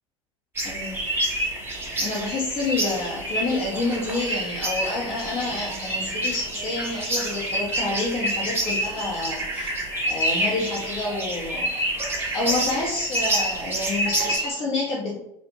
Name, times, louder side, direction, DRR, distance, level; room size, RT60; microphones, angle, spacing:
sound 1, 0.5-14.4, right 1 dB, 15° right, 0.6 m, -30 dB
voice 1, 0.6-1.0 2.0-9.7 10.1-11.7 12.2-15.2, left 2 dB, 35° left, -4 dB, 0.6 m, -28 dB
sound 2, 0.8-14.5, equal, 10° left, 1.0 m, -31 dB
2.7 x 2.0 x 2.8 m, 0.83 s
figure-of-eight pair, 75°, 16 cm